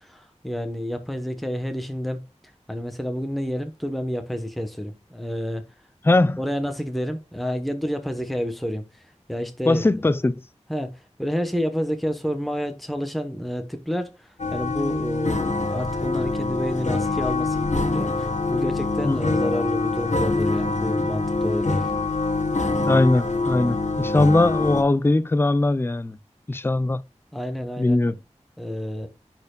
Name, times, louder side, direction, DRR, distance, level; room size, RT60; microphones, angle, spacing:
voice 1, 0.0-2.2 2.7-5.6 6.4-8.9 9.3-9.8 10.7-21.9 27.3-28.0 28.6-29.1, equal, ahead, 0.9 m, -29 dB
voice 2, 6.0-6.4 9.7-10.4 19.0-19.2 22.8-26.2 26.5-27.0 27.8-28.1, left 2 dB, 20° left, 0.4 m, -20 dB
sound 1, 14.4-24.8, left 3 dB, 75° left, 1.1 m, -25 dB
10.5 x 4.5 x 2.2 m
wide cardioid pair, 55°, 12 cm